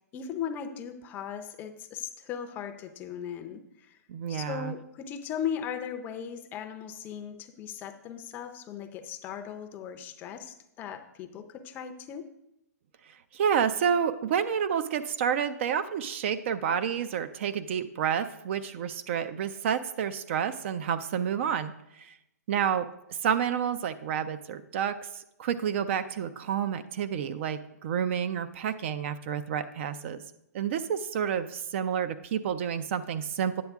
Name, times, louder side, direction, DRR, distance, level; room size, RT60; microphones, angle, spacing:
voice 1, 0.1-4.0 4.3-12.3, left 8 dB, 20° left, 7 dB, 0.5 m, -38 dB
voice 2, 4.1-4.7 13.1-22.2 22.5-30.2 30.5-33.6, right 8 dB, 45° right, 12 dB, 0.4 m, -29 dB
9.3 x 7.2 x 3.5 m, 0.83 s
hypercardioid pair, 145°, 9 cm